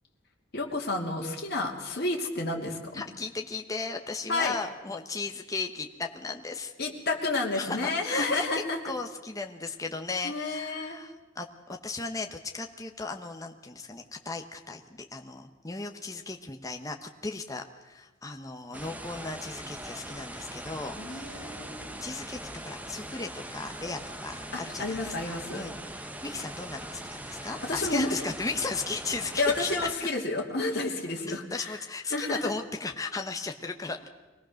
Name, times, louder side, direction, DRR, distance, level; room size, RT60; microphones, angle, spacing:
voice 1, 0.5-3.0 4.3-4.6 6.8-8.8 10.2-11.0 21.0-22.0 24.5-25.7 27.3-28.2 29.4-31.8 32.1-32.4, left 2 dB, 50° left, 0 dB, 2.7 m, -31 dB
voice 2, 2.9-6.7 7.5-11.5 11.8-21.4 22.0-25.8 26.2-29.7 31.3-34.1, left 3 dB, 15° left, 3 dB, 1.0 m, -36 dB
sound 1, 18.7-29.9, right 1 dB, 5° right, 0.8 m, -41 dB
23.5 x 18.0 x 6.4 m, 1.2 s
head